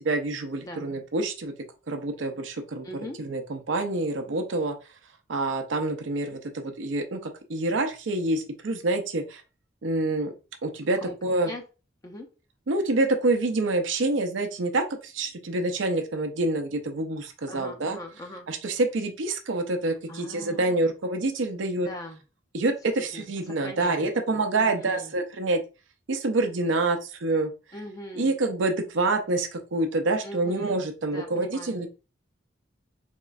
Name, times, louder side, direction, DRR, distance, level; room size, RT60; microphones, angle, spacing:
voice 1, 0.0-1.5 1.9-2.9 3.2-4.8 5.3-9.4 9.8-10.3 10.6-11.5 12.7-18.0 18.5-21.9 22.5-25.6 26.1-27.5 28.2-31.9, right 2 dB, 80° right, 5 dB, 0.6 m, -27 dB
voice 2, 2.8-3.2 11.0-11.2 11.4-11.6 12.0-12.3 17.5-18.5 20.1-20.9 21.8-22.2 22.9-25.1 27.7-28.4 30.2-30.8 31.1-31.8, left 1 dB, 20° left, 2 dB, 0.5 m, -41 dB
3.7 x 3.0 x 2.4 m, 0.32 s
head